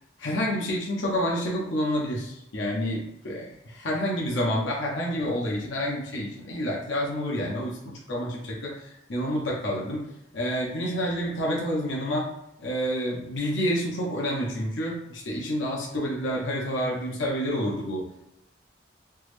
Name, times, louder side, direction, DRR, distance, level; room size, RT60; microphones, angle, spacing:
voice 1, 0.2-3.4 3.8-10.1 10.3-12.3 12.6-18.2, equal, 90° left, -3 dB, 0.7 m, -28 dB
3.3 x 2.1 x 3.1 m, 0.83 s
head